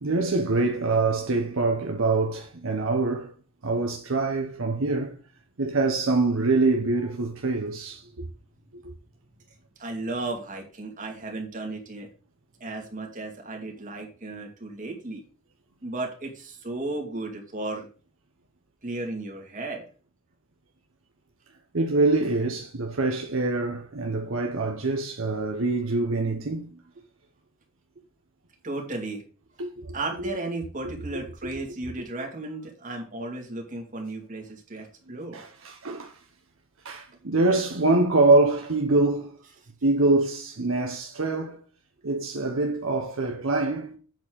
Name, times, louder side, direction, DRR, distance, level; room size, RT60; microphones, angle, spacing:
voice 1, 0.0-3.3 3.6-5.2 5.6-8.3 21.7-26.8 29.6-29.9 31.4-31.5 35.3-36.2 36.8-39.3 39.8-41.6 42.0-44.0, right 3 dB, 70° right, 1.0 m, -24 dB
voice 2, 9.8-12.1 12.6-15.2 15.8-17.9 18.8-19.9 28.6-29.2 29.9-35.4, right 2 dB, 40° right, 2.4 m, -34 dB
8.2 x 4.4 x 6.3 m
head